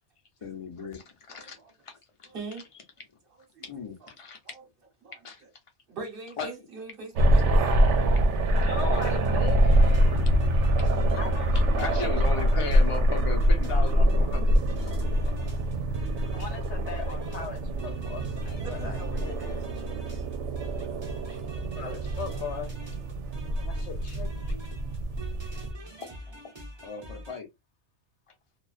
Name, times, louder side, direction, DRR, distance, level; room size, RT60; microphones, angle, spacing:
voice 1, 0.4-1.6 1.8-2.3 3.6-4.4 5.2-5.4 6.4-6.5 10.8-10.9 11.8-14.5 14.8-15.6 26.0-26.2 26.4-26.5 26.8-27.5, left 5 dB, 40° left, 0.5 m, -37 dB
voice 2, 1.3-1.7 2.3-2.6 3.3-3.6 4.0-4.1 4.4-4.6 5.0-5.2 5.9-7.6 18.6-20.2, right 4 dB, 55° right, 1.1 m, -42 dB
sound 1, 7.1-25.7, equal, 80° right, 0.9 m, -25 dB
voice 3, 8.5-10.4 11.1-12.0 16.3-19.7 21.8-22.7 23.7-24.6, left 6 dB, 75° left, 0.9 m, -40 dB
sound 2, 8.6-27.4, equal, 30° right, 0.6 m, -44 dB
2.3 x 2.3 x 2.4 m
omnidirectional pair, 1.2 m